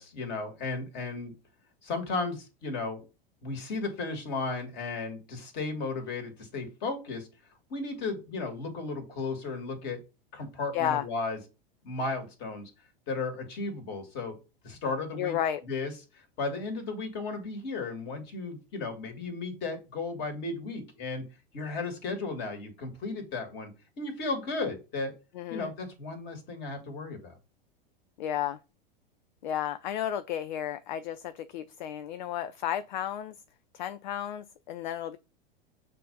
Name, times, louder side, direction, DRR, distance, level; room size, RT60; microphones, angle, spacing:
voice 1, 0.0-1.3 1.8-3.0 3.4-7.3 7.7-10.0 10.3-11.4 11.8-12.7 13.1-14.4 14.6-15.4 15.7-21.2 21.5-23.7 24.0-25.1 25.5-27.4, left 3 dB, 35° left, 2.1 m, -34 dB
voice 2, 10.7-11.0 15.1-15.6 25.3-25.7 28.2-28.6 29.4-33.4 33.7-35.2, left 10 dB, 50° left, 0.5 m, -32 dB
7.2 x 2.7 x 5.3 m
figure-of-eight pair, 90°, 29 cm